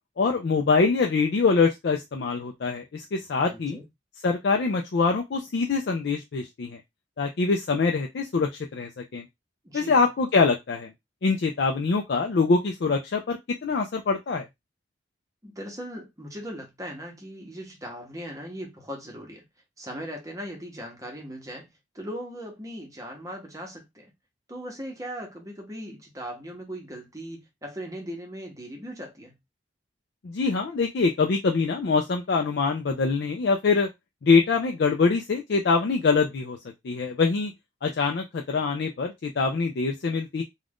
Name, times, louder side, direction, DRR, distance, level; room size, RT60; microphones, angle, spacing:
voice 1, 0.2-3.8 4.2-6.8 7.2-9.2 9.7-10.9 11.2-14.5 30.2-33.9 34.2-36.6 36.8-37.5 37.8-40.4, left 4 dB, 55° left, 0.4 m, -24 dB
voice 2, 3.4-3.8 9.6-10.0 15.4-19.4 19.8-21.7 21.9-24.1 24.5-29.4, equal, 15° right, 0.9 m, -39 dB
2.5 x 2.3 x 3.4 m
head